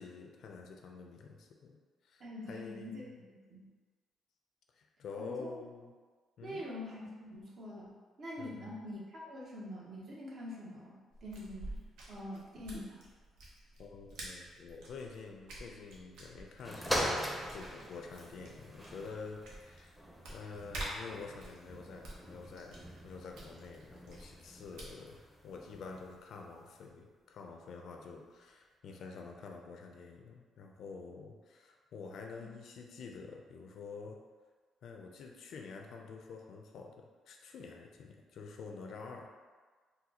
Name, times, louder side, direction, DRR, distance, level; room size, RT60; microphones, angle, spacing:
voice 1, 0.0-1.8 2.0-3.0 4.7-5.9 6.4-6.6 8.4-8.7 13.8-17.2 17.5-20.0 20.3-22.8 23.0-34.2 34.8-39.3, left 4 dB, 70° left, 2 dB, 0.4 m, -48 dB
voice 2, 2.2-3.7 5.2-5.5 6.4-11.8 12.1-13.1, left 1 dB, 55° right, -4 dB, 0.9 m, -45 dB
sound 1, 11.1-25.2, right 1 dB, 90° right, 0.7 m, -49 dB
sound 2, 16.6-26.2 26.9-27.0, equal, ahead, 0.6 m, -42 dB
4.0 x 2.2 x 2.8 m, 1.5 s
cardioid pair, 90°, 0 cm